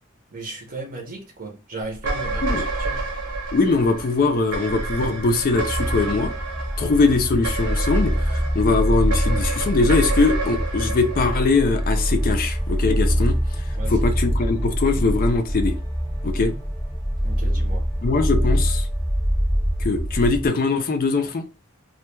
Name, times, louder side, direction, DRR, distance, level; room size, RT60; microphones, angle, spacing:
voice 1, 0.3-3.0 13.7-14.1 17.2-17.8, right 2 dB, 40° right, 0.7 m, -35 dB
sound 1, 2.0-12.4, right 3 dB, 85° right, 0.7 m, -30 dB
voice 2, 3.5-6.3 6.8-15.7 16.2-16.5 18.0-18.9 19.8-21.4, left 3 dB, 40° left, 0.4 m, -21 dB
sound 2, 4.9-20.5, equal, 5° left, 0.8 m, -24 dB
2.2 x 2.1 x 3.0 m
head